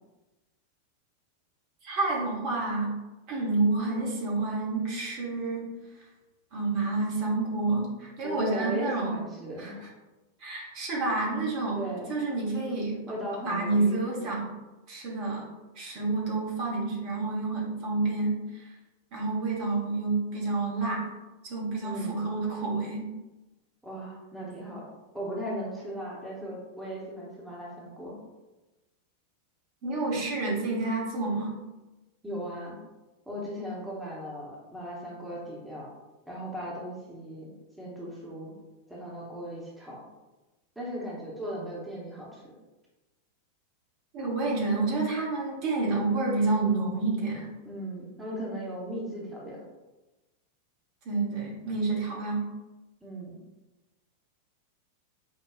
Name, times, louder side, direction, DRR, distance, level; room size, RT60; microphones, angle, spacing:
voice 1, 1.8-2.9 3.3-5.7 6.5-9.2 9.6-9.7 10.4-11.8 12.1-13.0 13.4-14.5 14.9-15.5 15.7-18.7 19.1-21.1 21.4-23.1 29.8-31.5 44.1-47.5 51.0-52.4, right 3 dB, 45° right, -4 dB, 1.0 m, -29 dB
voice 2, 8.2-9.9 11.7-12.1 13.1-14.1 21.8-22.3 23.8-24.9 25.1-28.2 32.2-32.8 33.3-35.9 36.3-37.5 37.8-38.5 38.9-40.0 40.8-42.5 47.6-49.6 53.0-53.4, equal, 5° right, -6 dB, 1.0 m, -37 dB
4.8 x 2.2 x 2.4 m, 1.1 s
figure-of-eight pair, 90°, 0 cm